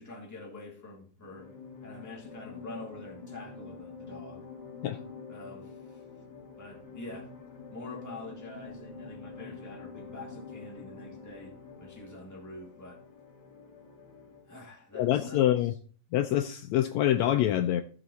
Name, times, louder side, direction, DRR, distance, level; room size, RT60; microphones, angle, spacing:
voice 1, 0.0-1.5 1.8-4.5 5.3-6.0 6.6-7.3 7.7-13.0 14.5-15.4, left 2 dB, 5° left, 1.8 m, -46 dB
sound 1, 1.2-14.5, left 5 dB, 40° left, 2.5 m, -47 dB
voice 2, 15.0-15.7 16.1-17.8, left 12 dB, 75° left, 1.7 m, -25 dB
14.0 x 6.0 x 4.2 m
omnidirectional pair, 3.5 m